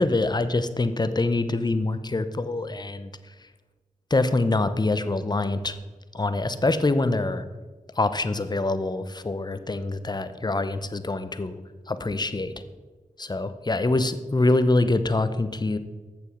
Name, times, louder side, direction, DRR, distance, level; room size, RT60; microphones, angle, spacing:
voice 1, 0.0-3.1 4.1-5.8 6.1-7.4 8.0-11.6 11.9-12.5 13.2-15.8, left 2 dB, 30° left, 11 dB, 0.8 m, -25 dB
8.0 x 6.8 x 6.3 m, 1.3 s
cardioid pair, 40°, 14 cm